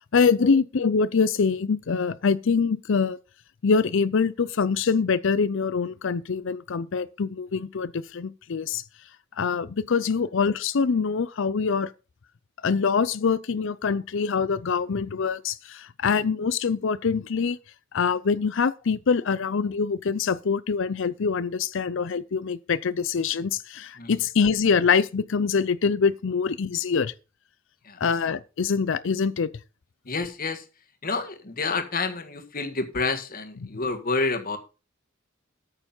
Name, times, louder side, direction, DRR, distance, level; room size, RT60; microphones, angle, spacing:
voice 1, 0.1-3.2 3.6-8.8 9.4-11.9 12.6-17.6 17.9-27.1 28.0-29.5 33.6-33.7, left 5 dB, 65° left, 0.5 m, -24 dB
voice 2, 30.0-30.6 31.0-34.6, left 3 dB, 45° left, 1.7 m, -29 dB
9.0 x 6.8 x 5.5 m
head